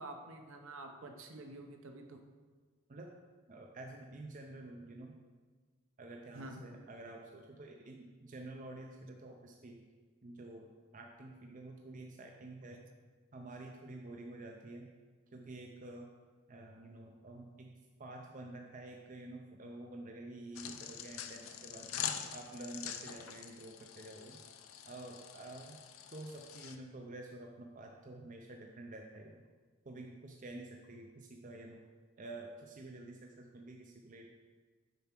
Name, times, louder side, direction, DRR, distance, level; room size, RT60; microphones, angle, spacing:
voice 1, 0.0-2.2 6.3-6.8 12.7-12.8, right 2 dB, 65° right, 4 dB, 0.9 m, -48 dB
voice 2, 3.5-5.2 6.0-9.8 10.2-12.8 13.3-14.9 15.3-16.1 16.5-22.0 22.3-24.4 24.8-25.8 26.1-29.4 29.8-31.8 32.2-34.3, right 2 dB, 35° right, 1 dB, 0.5 m, -49 dB
sound 1, 20.6-26.8, left 9 dB, 70° left, 0.5 m, -44 dB
6.8 x 4.7 x 5.9 m, 1.5 s
head